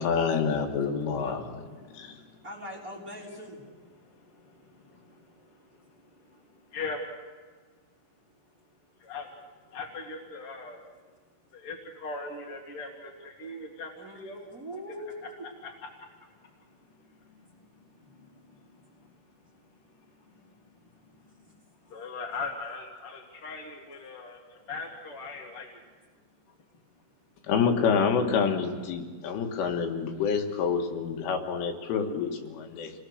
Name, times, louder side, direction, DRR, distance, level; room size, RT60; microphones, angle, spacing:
voice 1, 0.0-1.4 1.9-2.2 27.5-32.9, left 6 dB, 80° left, 3 dB, 4.3 m, -27 dB
voice 2, 1.1-1.4 2.4-3.6 14.0-15.4 18.0-18.1, equal, 20° right, -3 dB, 3.1 m, -42 dB
voice 3, 1.8-2.4 3.9-7.0 9.0-9.3 9.7-10.8 11.5-14.4 15.2-15.3 15.6-16.5 16.9-19.1 19.9-20.5 20.9-21.5 21.8-25.8, left 3 dB, 50° left, 1 dB, 1.7 m, -42 dB
28.5 x 20.0 x 6.5 m, 1.5 s
omnidirectional pair, 5.6 m